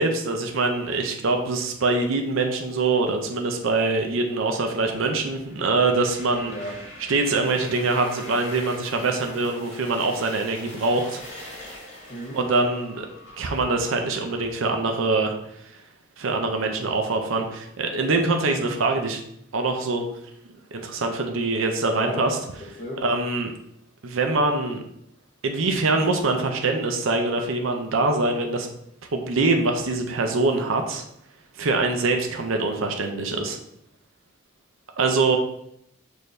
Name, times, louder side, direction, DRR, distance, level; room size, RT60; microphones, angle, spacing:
voice 1, 0.0-6.5 7.1-11.2 11.5-11.6 12.3-13.1 13.4-15.3 15.7-15.8 16.2-19.2 19.5-20.1 20.7-22.4 23.0-23.5 24.0-24.8 25.4-28.7 29.1-31.0 31.6-33.6 35.0-35.4, right 3 dB, 80° right, 4 dB, 0.6 m, -24 dB
sound 1, 4.8-14.5, left 1 dB, 85° left, 1.8 m, -43 dB
voice 2, 6.4-6.8 12.1-12.4 21.9-22.3 22.6-23.0, left 1 dB, 40° left, -4 dB, 0.8 m, -35 dB
6.3 x 2.6 x 3.2 m, 0.75 s
head